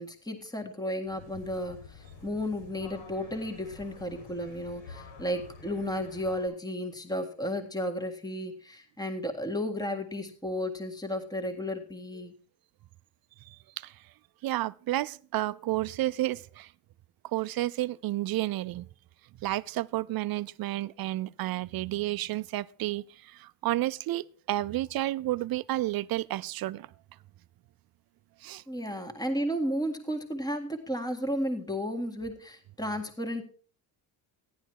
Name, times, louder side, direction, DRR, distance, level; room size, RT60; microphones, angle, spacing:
voice 1, 0.0-12.3 28.7-33.4, equal, 10° left, 1.8 m, -33 dB
sound 1, 1.1-6.5, left 4 dB, 80° left, 7.9 m, -48 dB
voice 2, 13.5-13.9 14.4-16.7 17.3-18.9 19.4-26.9 28.4-28.6, right 16 dB, 55° right, 0.5 m, -31 dB
14.5 x 11.0 x 4.7 m
cardioid pair, 135°, 44 cm